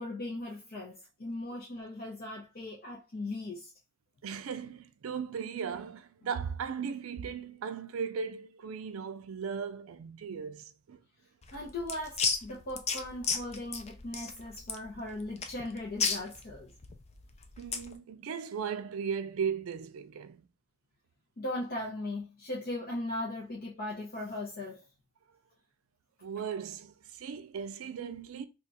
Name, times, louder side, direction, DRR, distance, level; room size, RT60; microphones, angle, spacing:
voice 1, 0.0-3.7 11.5-16.7 21.4-24.8, left 1 dB, 50° left, 0.8 m, -38 dB
voice 2, 4.2-11.0 17.6-20.5 26.2-28.5, right 6 dB, 90° right, 0.4 m, -37 dB
sound 1, 11.4-17.9, left 5 dB, 30° left, 0.4 m, -34 dB
2.8 x 2.3 x 4.0 m
head